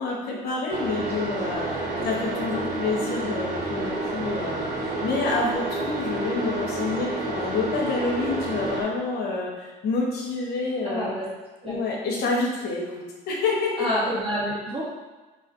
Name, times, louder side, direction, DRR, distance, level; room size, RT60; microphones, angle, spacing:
voice 1, 0.0-11.1 11.6-13.9, left 3 dB, 65° left, -2 dB, 0.8 m, -28 dB
sound 1, 0.7-8.8, right 2 dB, 60° right, 0.8 m, -29 dB
voice 2, 10.8-11.3 11.6-11.8 13.8-14.9, equal, 30° right, -7 dB, 1.5 m, -28 dB
2.8 x 2.4 x 4.2 m, 1.2 s
supercardioid pair, 85°, 19 cm